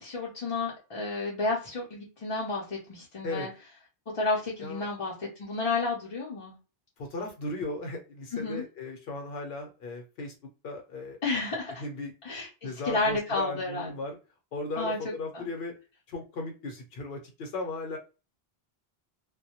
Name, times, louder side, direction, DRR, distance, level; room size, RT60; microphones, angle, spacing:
voice 1, 0.0-3.5 4.1-6.5 8.3-8.6 11.2-11.8 12.2-13.9 14.8-15.0 15.3-15.5, left 3 dB, 40° left, -4 dB, 0.5 m, -31 dB
voice 2, 7.0-10.3 10.6-11.2 11.8-12.1 12.6-14.2 14.5-15.7 16.1-18.0, left 2 dB, 70° left, 2 dB, 0.8 m, -36 dB
2.2 x 2.0 x 2.8 m, 0.30 s
omnidirectional pair, 1.0 m